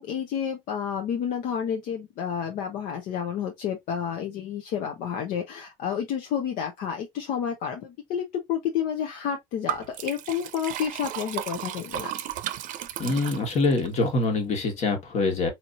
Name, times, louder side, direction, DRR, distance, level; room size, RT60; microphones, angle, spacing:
voice 1, 0.0-12.1, left 8 dB, 75° left, 0.8 m, -30 dB
Liquid, 9.7-13.9, right 12 dB, 65° right, 0.6 m, -34 dB
voice 2, 13.0-15.5, left 3 dB, 50° left, 1.5 m, -25 dB
4.3 x 2.9 x 2.5 m
cardioid pair, 105°, 14 cm